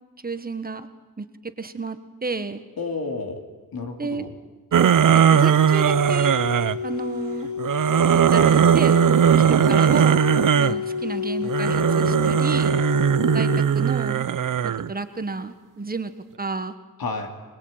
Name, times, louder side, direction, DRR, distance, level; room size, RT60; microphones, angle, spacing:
voice 1, 0.2-0.9 1.2-2.6 4.0-4.3 4.8-6.3 6.8-7.5 8.1-9.0 9.4-10.3 10.6-12.8 13.3-14.3 14.6-16.1 16.4-16.7, right 3 dB, 25° right, 10 dB, 1.3 m, -31 dB
voice 2, 2.8-3.4 3.7-4.3 9.2-9.6 17.0-17.3, left 3 dB, 70° left, 3 dB, 2.8 m, -31 dB
sound 1, 4.7-6.8 7.6-10.8 11.4-14.9, right 8 dB, 60° right, 0.7 m, -19 dB
sound 2, 4.8-13.9, left 7 dB, 50° left, 1.2 m, -29 dB
23.5 x 21.0 x 8.8 m, 1.3 s
wide cardioid pair, 170°, 37 cm